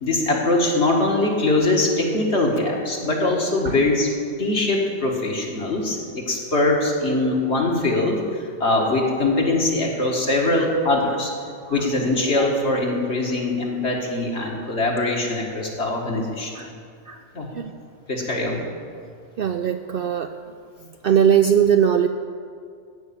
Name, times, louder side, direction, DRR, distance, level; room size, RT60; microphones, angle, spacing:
voice 1, 0.0-4.1 4.4-11.3 11.7-16.6 17.3-17.5 18.1-18.6, left 2 dB, 55° left, -1 dB, 2.1 m, -22 dB
voice 2, 19.4-20.3 21.0-22.1, right 8 dB, 60° right, 7 dB, 0.6 m, -19 dB
15.5 x 5.5 x 8.6 m, 2.3 s
omnidirectional pair, 1.3 m